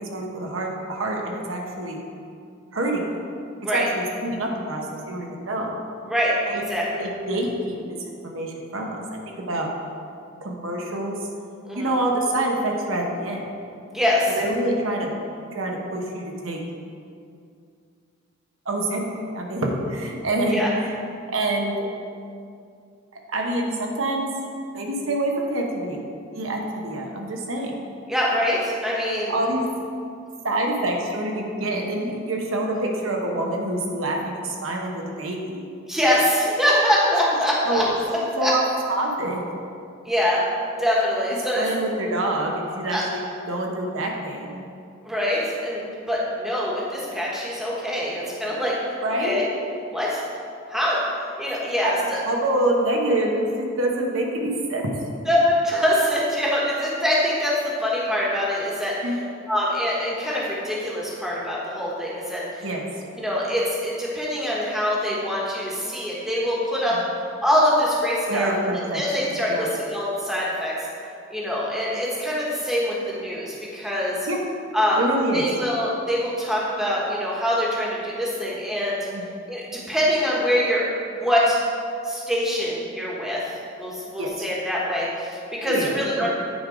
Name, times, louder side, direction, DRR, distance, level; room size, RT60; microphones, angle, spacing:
voice 1, 0.0-2.0 2.7-3.0 3.6-5.7 6.5-6.6 6.9-7.8 8.2-9.7 10.4-11.2 11.7-13.5 14.3-15.1 15.5-16.6 18.7-19.0 19.3-20.6 21.3-21.7 23.3-24.3 24.7-26.0 26.3-27.8 29.3-29.6 30.4-35.6 37.6-37.9 38.1-39.4 41.6-43.2 43.5-44.7 49.0-49.4 51.8-51.9 52.3-54.9 59.0-59.2 62.6-62.9 68.3-69.7 74.3-74.4 75.0-75.4 79.1-79.2 84.2-84.4 85.6-85.9 86.2-86.3, right 1 dB, 85° right, 0 dB, 1.0 m, -26 dB
voice 2, 6.7-7.0 11.6-11.9 13.9-14.4 20.5-20.7 21.8-21.9 28.1-29.3 35.9-37.8 38.4-38.5 40.0-40.4 40.8-41.7 42.9-43.0 45.0-45.8 46.1-48.7 49.2-49.4 49.9-50.2 50.7-51.0 51.4-52.2 55.3-58.9 59.5-62.7 63.1-67.0 67.4-70.7 71.3-74.2 74.7-75.0 75.3-79.0 79.5-81.6 82.0-83.4 83.8-86.3, equal, ahead, -5 dB, 1.2 m, -24 dB
9.6 x 3.8 x 5.0 m, 2.4 s
head